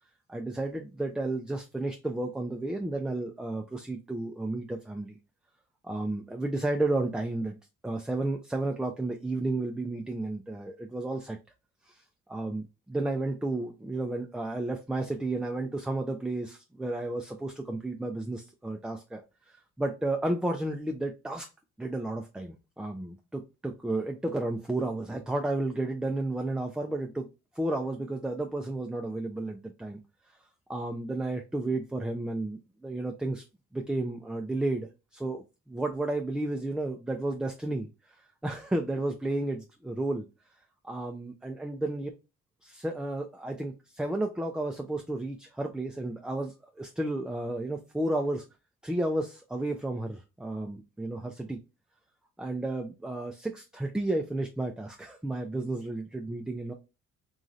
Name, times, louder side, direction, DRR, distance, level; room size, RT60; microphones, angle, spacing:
voice 1, 0.3-5.2 5.8-7.6 7.8-11.4 11.9-12.0 12.3-21.5 21.8-27.3 27.5-30.0 30.7-33.4 33.7-38.2 38.4-40.3 40.8-42.1 42.6-48.4 48.8-51.6 52.4-56.7, right 2 dB, 5° right, 3 dB, 0.3 m, -32 dB
3.0 x 2.6 x 2.4 m, 0.27 s
cardioid pair, 90°, 30 cm